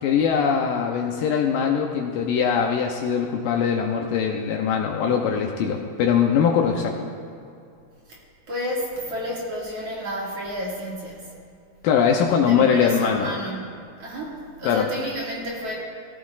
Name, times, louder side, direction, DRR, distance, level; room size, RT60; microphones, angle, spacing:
voice 1, 0.0-7.1 11.8-13.3 14.6-14.9, left 7 dB, 85° left, 1 dB, 2.0 m, -22 dB
voice 2, 8.5-11.2 12.5-13.6 14.0-15.7, equal, 45° right, -5 dB, 2.6 m, -31 dB
17.5 x 15.5 x 2.4 m, 2.4 s
omnidirectional pair, 4.8 m